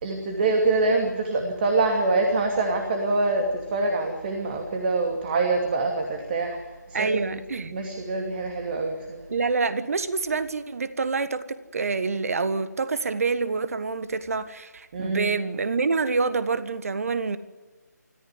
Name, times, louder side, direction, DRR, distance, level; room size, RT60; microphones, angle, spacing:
voice 1, 0.0-6.6 6.9-7.4 7.7-9.2 14.9-15.3, right 3 dB, 35° right, 2.7 m, -25 dB
voice 2, 6.9-7.7 9.3-17.4, right 4 dB, 55° right, 1.5 m, -27 dB
25.5 x 14.5 x 9.7 m
figure-of-eight pair, 150°, 10 cm